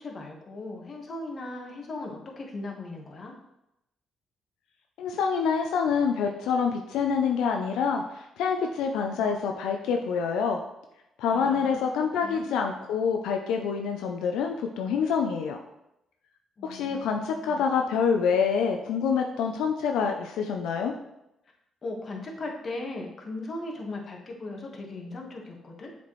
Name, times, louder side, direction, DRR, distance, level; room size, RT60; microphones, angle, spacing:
voice 1, 0.0-3.3 11.3-12.6 16.6-17.7 21.8-25.9, left 2 dB, 45° left, 0 dB, 1.3 m, -38 dB
voice 2, 5.0-10.6 11.2-15.6 16.6-20.9, left 6 dB, 90° left, 3 dB, 0.4 m, -26 dB
7.1 x 4.2 x 3.1 m, 0.86 s
cardioid pair, 90°, 0 cm